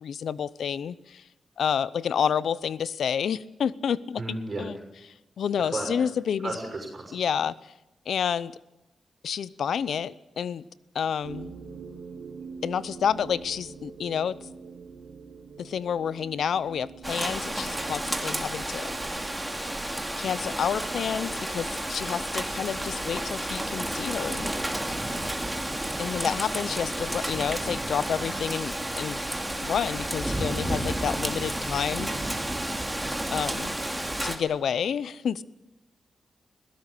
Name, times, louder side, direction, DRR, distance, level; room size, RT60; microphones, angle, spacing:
voice 1, 0.0-1.2 1.6-4.8 5.4-6.6 7.1-7.5 8.1-8.5 9.2-10.7 10.9-11.5 12.6-14.4 15.6-18.9 20.2-24.5 26.0-29.2 29.6-32.1 33.3-33.7 34.2-35.4, left 8 dB, 80° left, 18 dB, 0.7 m, -29 dB
voice 2, 4.2-4.6 5.7-5.9 6.4-7.3, right 2 dB, 40° right, 3 dB, 6.3 m, -33 dB
sound 1, 11.2-26.1, right 5 dB, 80° right, 2.9 m, -46 dB
Rain, 17.0-34.4, right 1 dB, 10° right, 2.6 m, -31 dB
22.0 x 17.0 x 8.3 m, 0.96 s
cardioid pair, 95°, 0 cm